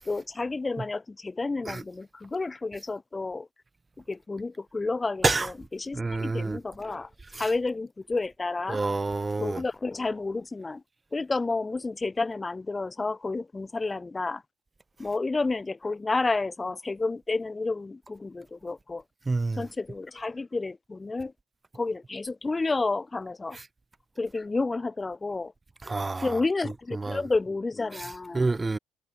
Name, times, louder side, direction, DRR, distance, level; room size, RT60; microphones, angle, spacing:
voice 1, 0.1-3.5 4.1-8.8 9.4-10.8 11.1-14.4 15.0-19.0 19.6-21.3 21.7-23.6 24.2-25.5 26.2-28.5, left 3 dB, 20° left, 0.5 m, -30 dB
voice 2, 5.9-6.6 7.3-7.5 8.7-9.6 19.3-19.6 25.9-26.4 26.9-27.2 28.3-28.8, right 3 dB, 20° right, 0.6 m, -28 dB
hypercardioid pair, 55°, 0 cm